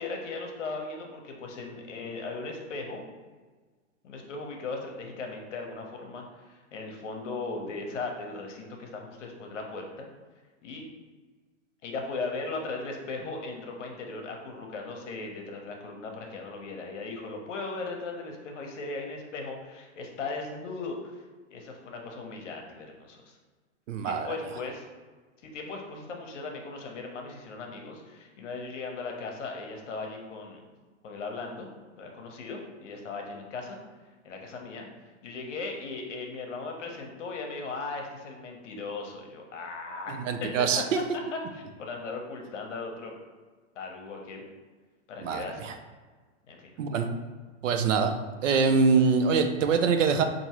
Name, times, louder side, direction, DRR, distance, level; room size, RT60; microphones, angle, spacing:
voice 1, 0.0-3.0 4.0-10.1 10.6-10.8 11.8-21.2 21.5-23.4 24.0-24.8 25.4-30.6 31.0-31.7 32.0-33.8 34.2-34.9 35.2-40.5 40.8-40.9 41.3-43.1 43.7-44.4 45.1-45.6 46.5-46.7, left 3 dB, 75° left, 2 dB, 0.9 m, -38 dB
voice 2, 23.9-24.4 40.1-41.0 45.2-45.8 46.8-47.1 47.6-48.1 48.4-50.2, right 5 dB, 80° right, 7 dB, 0.6 m, -24 dB
4.5 x 2.7 x 2.9 m, 1.4 s
supercardioid pair, 170°, 37 cm